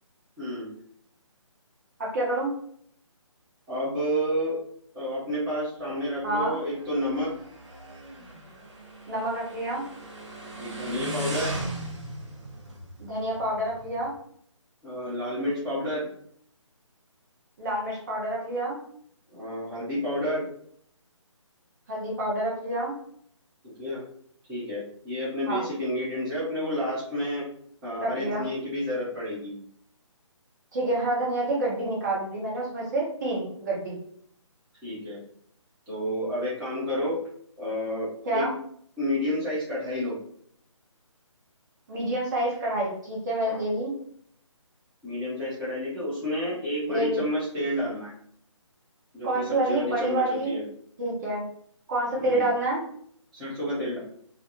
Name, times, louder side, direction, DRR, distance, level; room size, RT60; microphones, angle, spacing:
voice 1, 0.4-0.7 3.7-4.6 4.9-7.3 10.6-11.5 14.8-16.1 19.3-20.5 23.6-24.0 24.5-27.4 27.8-29.5 34.8-35.2 35.9-37.2 37.6-38.5 39.0-40.2 43.4-43.6 45.0-48.1 49.1-50.6 52.2-52.5 53.3-54.0, equal, 5° right, -11 dB, 0.3 m, -30 dB
voice 2, 2.0-2.5 6.2-6.6 9.1-9.8 13.0-14.1 17.6-18.8 21.9-22.9 25.5-25.6 28.0-28.5 30.7-33.9 38.3-38.5 41.9-43.9 46.9-47.2 49.2-50.6 51.0-51.4 51.9-52.8, right 1 dB, 35° right, -5 dB, 0.8 m, -28 dB
Motorcycle, 5.8-14.1, right 1 dB, 60° right, 0.9 m, -38 dB
2.4 x 2.2 x 2.8 m, 0.64 s
figure-of-eight pair, 150°, 17 cm